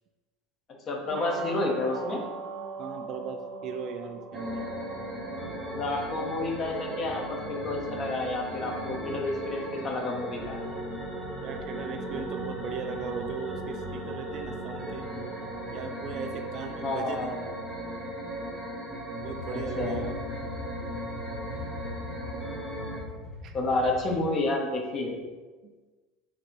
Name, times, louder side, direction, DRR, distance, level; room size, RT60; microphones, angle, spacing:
voice 1, 0.9-2.2 5.6-10.6 16.8-17.3 19.5-20.0 23.5-25.2, left 2 dB, 35° left, 1 dB, 0.8 m, -30 dB
sound 1, 1.1-20.9, right 4 dB, 65° right, 0.7 m, -46 dB
voice 2, 2.8-4.7 11.4-15.1 15.7-17.4 19.2-20.2 23.4-23.5 25.6-25.7, right 6 dB, 45° right, 7 dB, 0.3 m, -38 dB
sound 2, 4.3-23.0, right 1 dB, 5° right, 0.8 m, -37 dB
sound 3, 19.2-24.2, left 2 dB, 15° left, 1.0 m, -41 dB
3.9 x 2.8 x 4.4 m, 1.3 s
cardioid pair, 150°, 0 cm